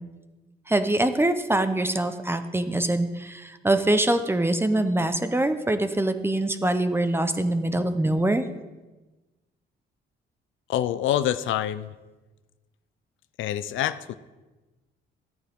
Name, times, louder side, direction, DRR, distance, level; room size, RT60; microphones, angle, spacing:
voice 1, 0.7-8.4, right 1 dB, 10° right, 10 dB, 0.8 m, -24 dB
voice 2, 10.7-12.0 13.4-14.1, left 11 dB, 75° left, 14 dB, 0.5 m, -26 dB
14.0 x 9.3 x 3.6 m, 1.2 s
cardioid pair, 90°, 20 cm